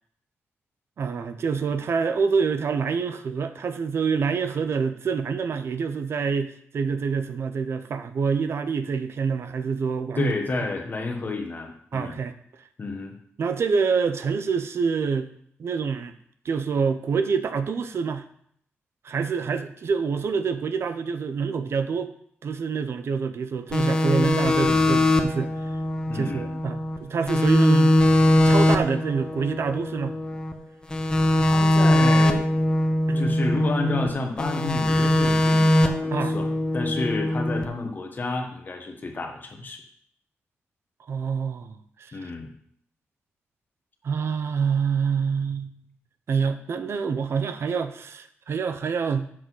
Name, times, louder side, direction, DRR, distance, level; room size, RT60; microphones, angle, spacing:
voice 1, 1.0-10.3 11.9-12.3 13.4-15.3 15.6-16.1 16.4-18.2 19.0-22.1 22.4-25.5 26.1-27.9 28.4-30.1 33.1-33.3 36.1-36.4 41.1-42.3 44.0-45.7 46.3-49.3, right 5 dB, 60° right, 10 dB, 0.6 m, -26 dB
voice 2, 10.2-12.2 12.8-13.1 26.1-26.6 31.4-32.4 33.1-39.8 42.1-42.5, left 3 dB, 40° left, 3 dB, 1.3 m, -30 dB
sound 1, 23.7-27.0 27.3-30.5 30.9-34.1 34.4-37.6, left 1 dB, 15° left, 0.8 m, -21 dB
7.5 x 3.9 x 6.2 m, 0.66 s
cardioid pair, 100°, 5 cm